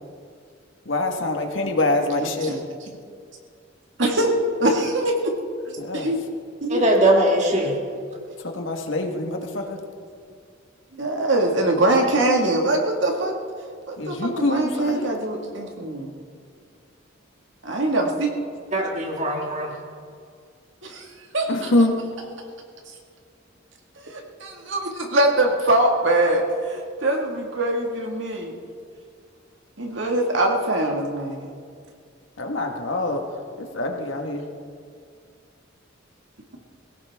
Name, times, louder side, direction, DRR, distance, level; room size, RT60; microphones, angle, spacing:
voice 1, 0.8-2.5 5.8-6.1 8.4-9.8 14.0-15.0 21.5-21.9 32.4-33.2 33.6-34.4, left 2 dB, 75° left, 3 dB, 1.7 m, -24 dB
voice 2, 2.2-2.6 4.0-5.3 5.7-6.2 6.6-6.8 10.9-13.4 13.9-16.1 17.6-18.3 20.8-21.1 21.3-21.7 24.0-28.6 29.8-31.5, right 1 dB, 70° right, 1 dB, 2.0 m, -23 dB
voice 3, 6.7-7.8 18.7-19.8, right 1 dB, 40° right, 0 dB, 2.5 m, -20 dB
20.5 x 17.0 x 3.6 m, 2.2 s
head